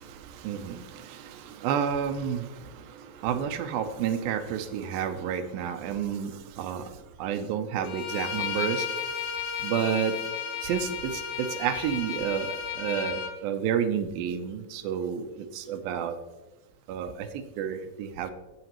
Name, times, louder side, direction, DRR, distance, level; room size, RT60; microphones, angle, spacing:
voice 1, 0.0-8.9 9.6-10.1 10.6-16.2 16.9-18.3, right 8 dB, 80° right, 9 dB, 2.4 m, -30 dB
Bowed string instrument, 7.8-13.3, left 7 dB, 80° left, 1.4 m, -33 dB
17.0 x 6.8 x 3.0 m, 1.1 s
omnidirectional pair, 4.3 m